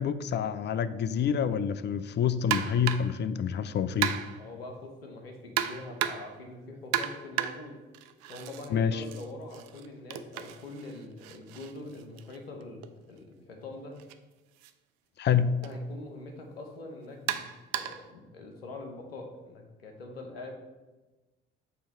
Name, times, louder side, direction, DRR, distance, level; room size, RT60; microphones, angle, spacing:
voice 1, 0.0-4.1 8.7-9.0 15.2-15.6, left 7 dB, 40° left, 14 dB, 0.4 m, -27 dB
sound 1, 2.5-3.2 4.0-4.5 5.6-6.4 6.9-8.7 9.0-12.9 14.0-14.1 14.6-14.7 15.6-15.8 17.3-18.1, right 11 dB, 65° right, 0.5 m, -34 dB
voice 2, 4.4-7.8 8.3-14.0 15.6-17.4 17.7-20.6, left 2 dB, 90° left, 3 dB, 0.8 m, -44 dB
6.7 x 2.9 x 4.7 m, 1.2 s
hypercardioid pair, 50°, 29 cm